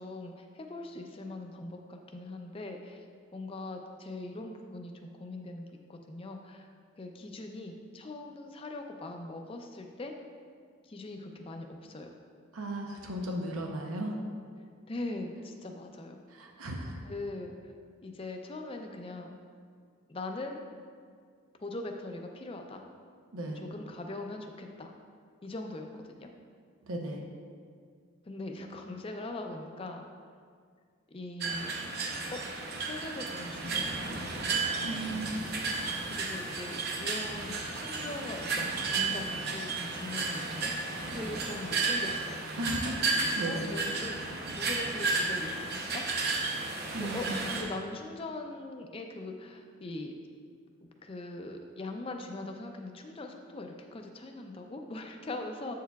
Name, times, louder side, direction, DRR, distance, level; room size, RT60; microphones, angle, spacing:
voice 1, 0.0-3.0 3.3-6.7 7.0-10.1 10.8-12.1 14.9-16.2 17.0-17.7 18.0-19.3 20.1-20.6 21.6-22.9 23.6-24.9 25.4-26.3 28.3-30.0 31.1-31.7 32.3-34.1 34.3-34.6 35.8-42.4 43.4-46.0 47.0-50.1 50.8-55.7, left 2 dB, 25° left, 3 dB, 0.4 m, -41 dB
voice 2, 12.5-14.2 16.3-17.0 23.3-23.7 26.8-27.2 34.8-35.3 42.6-43.7 46.9-47.3, right 1 dB, 90° right, 1 dB, 0.7 m, -36 dB
sound 1, 31.4-47.6, right 3 dB, 50° right, 0.7 m, -33 dB
8.1 x 6.5 x 2.3 m, 2.1 s
head